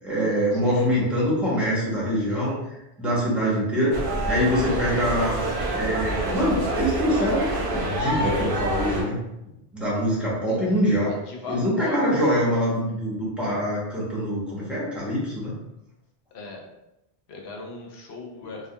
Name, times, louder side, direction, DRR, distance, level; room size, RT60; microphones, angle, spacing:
voice 1, 0.0-5.4 5.7-9.2 9.7-11.1 11.5-15.6, equal, ahead, -8 dB, 0.7 m, -24 dB
voice 2, 0.5-0.9 2.3-2.4 10.5-10.8 11.0-12.0 16.3-16.7 17.3-18.7, left 2 dB, 75° left, 0 dB, 0.8 m, -38 dB
sound 1, 3.9-9.0, right 1 dB, 60° right, 0.8 m, -27 dB
2.3 x 2.1 x 2.7 m, 0.91 s
omnidirectional pair, 1.1 m